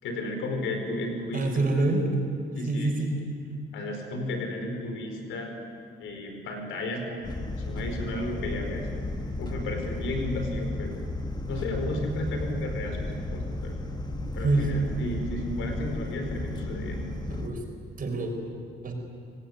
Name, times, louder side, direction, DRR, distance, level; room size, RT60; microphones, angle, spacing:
voice 1, 0.0-1.5 1.7-1.8 2.5-2.9 3.7-5.5 6.0-8.9 9.4-11.0 11.4-13.8 14.3-17.1, left 1 dB, 85° left, 4 dB, 4.9 m, -33 dB
voice 2, 1.3-2.1 2.7-3.1 11.4-11.5 14.2-14.9 17.3-17.6 18.0-18.3 18.8-18.9, right 2 dB, 45° right, 3 dB, 5.7 m, -26 dB
sound 1, 7.2-17.5, left 2 dB, 20° left, 2.2 m, -34 dB
25.5 x 19.0 x 9.6 m, 2.5 s
cardioid pair, 90°, 20 cm